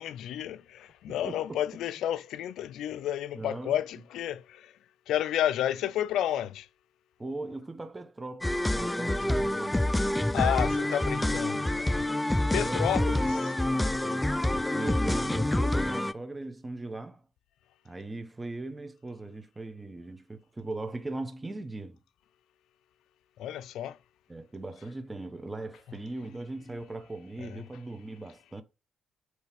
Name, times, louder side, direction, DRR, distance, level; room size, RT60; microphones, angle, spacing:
voice 1, 0.0-4.7 5.1-6.7 10.3-12.0 12.5-13.4 23.4-24.0 27.4-27.6, left 11 dB, 80° left, 0.4 m, -31 dB
voice 2, 1.1-1.6 3.3-3.8 7.2-9.9 12.4-13.2 14.0-17.3 17.8-22.0 24.3-28.6, right 2 dB, 20° right, 1.0 m, -39 dB
sound 1, 8.4-16.1, left 1 dB, 10° left, 0.4 m, -27 dB
8.9 x 3.2 x 5.9 m
cardioid pair, 90°, 0 cm